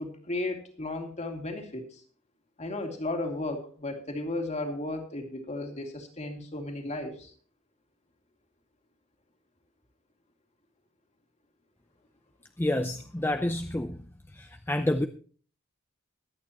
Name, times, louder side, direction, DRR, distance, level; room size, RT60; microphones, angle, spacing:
voice 1, 0.0-2.0 2.6-7.3, left 2 dB, 35° left, 3 dB, 2.5 m, -34 dB
voice 2, 12.6-14.0 14.3-15.1, left 1 dB, 10° left, 7 dB, 0.6 m, -29 dB
23.0 x 8.8 x 3.0 m, 0.43 s
head